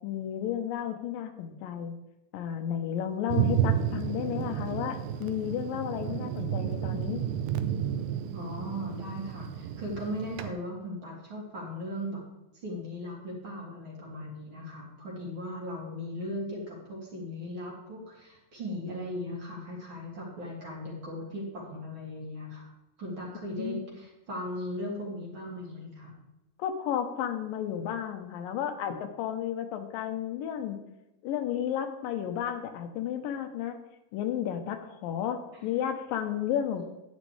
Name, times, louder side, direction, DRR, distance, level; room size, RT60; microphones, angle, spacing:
voice 1, 0.0-1.9 2.3-7.2 23.6-23.9 26.6-30.8 31.2-33.8 34.1-36.9, left 10 dB, 80° left, 6 dB, 2.5 m, -32 dB
Thunder, 3.3-10.5, right 10 dB, 80° right, 2.3 m, -31 dB
voice 2, 8.3-12.2 12.6-22.7 23.0-26.1, left 1 dB, 40° right, -3 dB, 2.7 m, -38 dB
10.5 x 9.6 x 3.2 m, 0.97 s
omnidirectional pair, 4.0 m